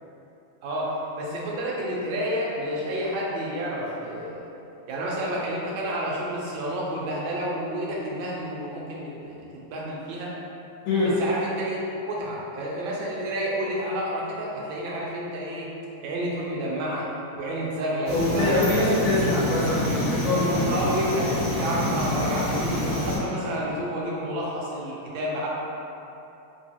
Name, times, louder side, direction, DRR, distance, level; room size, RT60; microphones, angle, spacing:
voice 1, 0.6-4.4 4.9-10.3 11.2-15.7 16.0-17.1 17.3-19.3 20.5-25.5, equal, 75° right, -4 dB, 1.4 m, -30 dB
voice 2, 10.8-11.1 18.1-20.7, left 2 dB, 75° left, -8 dB, 1.5 m, -24 dB
sound 1, 18.1-23.2, left 1 dB, 25° left, 0.9 m, -27 dB
3.7 x 3.0 x 2.7 m, 2.9 s
omnidirectional pair, 2.4 m